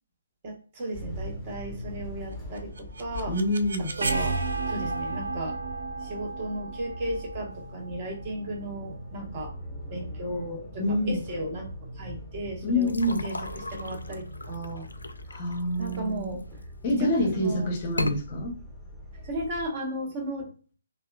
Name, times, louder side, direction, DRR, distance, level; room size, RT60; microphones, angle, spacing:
voice 1, 0.4-3.4 3.8-4.4 4.7-5.6 6.0-11.7 11.9-14.9 15.8-16.4 17.0-17.7 19.2-20.5, right 1 dB, 35° right, 0.9 m, -35 dB
sound 1, 0.9-19.7, left 1 dB, 5° left, 0.9 m, -42 dB
sound 2, 2.6-8.4, right 3 dB, 65° right, 0.4 m, -33 dB
voice 2, 3.3-3.9 10.8-11.2 12.6-13.3 15.3-16.4 16.8-18.6, left 1 dB, 35° left, 0.7 m, -27 dB
sound 3, 12.8-16.6 17.1-17.5 17.9-18.2, left 2 dB, 80° left, 0.3 m, -36 dB
2.8 x 2.2 x 2.2 m
figure-of-eight pair, 140°, 0 cm